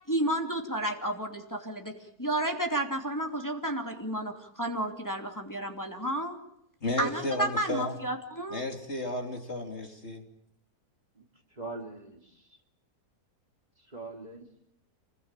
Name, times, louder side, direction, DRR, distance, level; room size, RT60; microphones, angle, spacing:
voice 1, 0.1-1.9 2.2-6.4 7.0-8.6, right 1 dB, 10° left, 3 dB, 2.8 m, -31 dB
voice 2, 6.8-8.0 8.5-10.2, left 1 dB, 40° left, 4 dB, 3.3 m, -33 dB
voice 3, 11.1-12.6 13.8-14.5, right 3 dB, 25° right, 3 dB, 3.2 m, -43 dB
28.5 x 21.5 x 9.0 m, 0.72 s
omnidirectional pair, 1.7 m